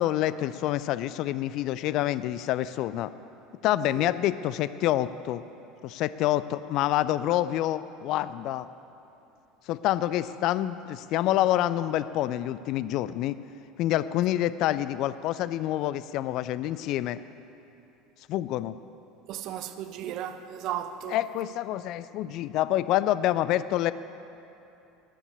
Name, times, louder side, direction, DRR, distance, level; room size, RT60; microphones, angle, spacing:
voice 1, 0.0-3.1 3.6-5.4 5.8-8.7 9.7-13.4 13.8-17.2 18.3-18.8 21.1-23.9, left 13 dB, 50° left, 0.4 m, -27 dB
voice 2, 19.3-21.2, right 11 dB, 50° right, 0.9 m, -35 dB
13.0 x 10.0 x 8.4 m
figure-of-eight pair, 70°, 0 cm